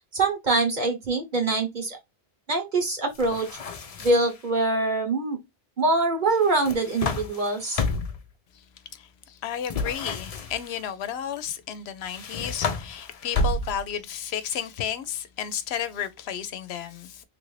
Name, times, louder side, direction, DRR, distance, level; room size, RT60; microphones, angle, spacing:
voice 1, 0.1-2.0 2.5-3.6 4.0-5.4 5.8-7.8, right 3 dB, 50° right, 1.1 m, -24 dB
sound 1, 3.1-4.4 6.4-8.3 9.6-10.8 12.0-14.0, left 3 dB, 45° left, 0.5 m, -31 dB
voice 2, 8.9-17.2, left 9 dB, 80° left, 0.8 m, -32 dB
3.4 x 2.5 x 3.1 m
omnidirectional pair, 1.1 m